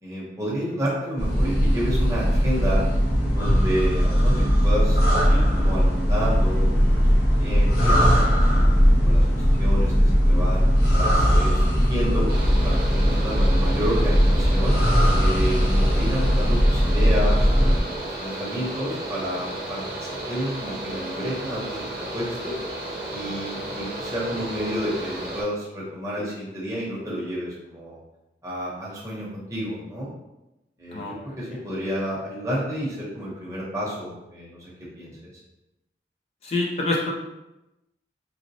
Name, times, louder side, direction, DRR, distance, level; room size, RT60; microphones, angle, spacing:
voice 1, 0.0-2.8 3.3-8.6 9.0-12.3 12.6-14.8 15.2-21.8 22.1-22.5 23.1-28.0 28.4-30.1 30.8-34.7 35.0-35.2, equal, 15° right, -6 dB, 0.8 m, -30 dB
sound 1, 1.2-17.8, equal, 60° left, 0.7 m, -19 dB
Mechanical fan, 12.3-25.4, right 1 dB, 60° right, 0.8 m, -33 dB
voice 2, 30.9-31.4 36.4-37.1, left 2 dB, 35° left, -1 dB, 0.3 m, -26 dB
3.9 x 2.0 x 2.6 m, 0.96 s
head